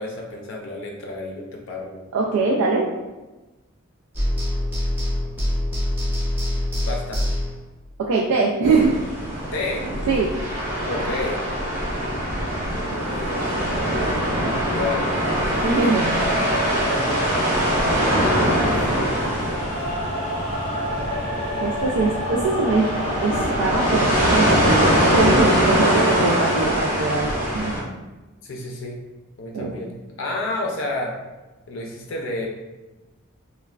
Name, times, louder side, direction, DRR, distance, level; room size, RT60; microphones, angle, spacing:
voice 1, 0.0-2.0 6.9-7.2 9.5-9.9 10.9-11.4 12.9-13.6 14.7-15.1 16.9-17.2 28.4-29.0 29.4-31.2 31.7-32.5, left 2 dB, 65° left, 0 dB, 0.4 m, -30 dB
voice 2, 2.1-2.9 8.1-9.0 10.1-10.3 15.5-16.3 21.6-22.9 23.2-24.8 25.0-27.8 29.5-29.8, right 3 dB, 90° right, -2 dB, 0.3 m, -22 dB
sound 1, 4.1-7.7, left 1 dB, 10° right, 0.5 m, -24 dB
sound 2, 8.6-27.8, equal, 40° right, 0.8 m, -23 dB
sound 3, 15.7-26.7, equal, 25° left, 0.7 m, -30 dB
3.1 x 2.1 x 2.3 m, 1.1 s
head